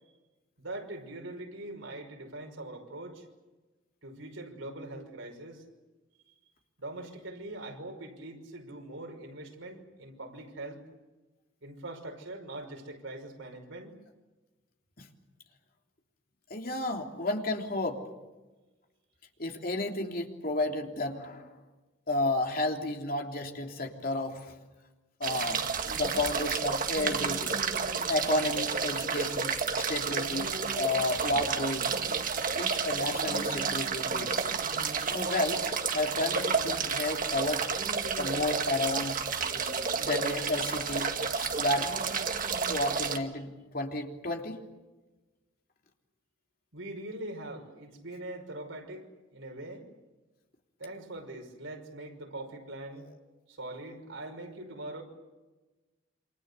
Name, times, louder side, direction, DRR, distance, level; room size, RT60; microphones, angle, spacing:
voice 1, 0.6-3.3 4.0-5.6 6.3-6.4 6.8-10.8 11.6-14.0 46.7-49.9 50.8-53.1 53.5-55.0, right 1 dB, 85° right, 3 dB, 5.5 m, -42 dB
voice 2, 16.5-18.0 19.4-21.5 22.1-24.5 25.2-25.6 25.9-27.6 28.1-30.5 30.8-31.9 32.5-34.4 35.1-35.6 35.9-37.7 38.2-39.2 40.0-41.1 41.4-41.9 42.7-44.6, left 2 dB, 50° left, 3 dB, 3.3 m, -32 dB
sound 1, 25.2-43.2, right 5 dB, 45° right, 1.9 m, -31 dB
28.0 x 26.5 x 6.9 m, 1.2 s
head